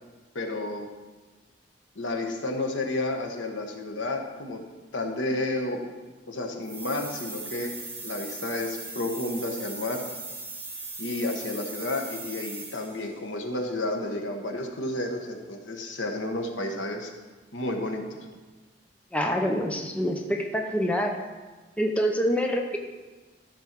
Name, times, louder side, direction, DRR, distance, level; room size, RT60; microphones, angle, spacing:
voice 1, 0.3-0.9 2.0-4.6 4.9-5.9 6.3-7.7 8.0-10.0 11.0-17.1 17.5-18.0, left 2 dB, 80° left, 3 dB, 1.2 m, -31 dB
sound 1, 6.6-13.1, right 3 dB, 10° right, 1.8 m, -39 dB
voice 2, 19.1-21.2 21.8-22.8, equal, 5° left, 2 dB, 0.7 m, -26 dB
13.0 x 4.4 x 6.0 m, 1.3 s
head